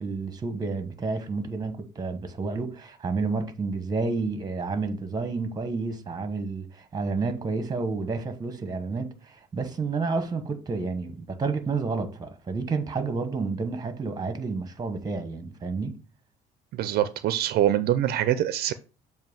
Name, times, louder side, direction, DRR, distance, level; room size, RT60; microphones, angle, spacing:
voice 1, 0.0-16.0, right 4 dB, 25° right, 1.2 m, -30 dB
voice 2, 16.7-18.7, right 12 dB, 70° right, 0.5 m, -24 dB
7.5 x 2.7 x 5.4 m
cardioid pair, 110°, 17 cm